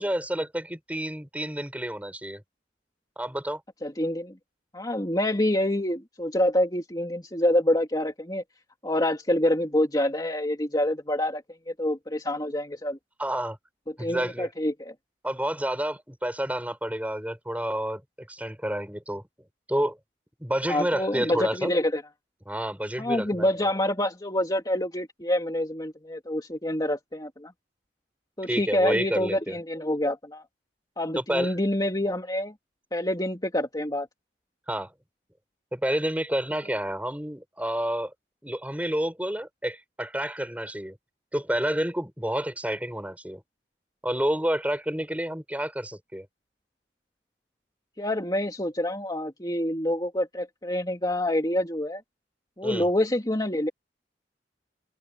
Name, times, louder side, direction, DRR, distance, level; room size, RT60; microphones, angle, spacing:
voice 1, 0.0-2.4 3.2-3.6 13.2-13.6 14.0-14.5 15.2-18.0 18.3-19.2 19.7-20.0 20.4-21.7 22.5-23.7 28.5-29.6 31.1-31.5 34.7-34.9 35.7-38.1 38.4-41.0 41.3-43.4 44.0-46.3 52.6-52.9, right 1 dB, 10° right, 6.7 m, -29 dB
voice 2, 3.8-4.3 4.7-8.4 8.8-13.0 14.0-14.9 20.7-22.0 23.0-27.5 28.4-30.4 31.0-32.5 32.9-34.1 48.0-52.0 52.6-53.7, left 1 dB, 20° left, 2.9 m, -27 dB
open air
head